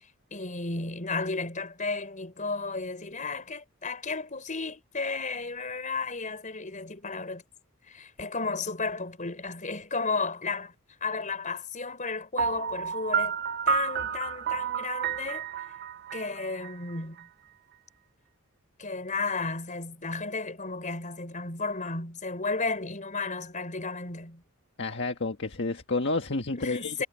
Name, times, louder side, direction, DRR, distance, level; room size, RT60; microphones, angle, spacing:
voice 1, 0.3-7.4 7.9-10.7 11.0-13.4 13.7-15.4 16.1-17.3 18.8-24.4 26.6-27.1, left 3 dB, 35° left, 4.9 m, -33 dB
Piano, 12.4-17.2, right 7 dB, 45° right, 0.6 m, -30 dB
voice 2, 24.8-27.0, left 3 dB, 55° left, 1.6 m, -30 dB
head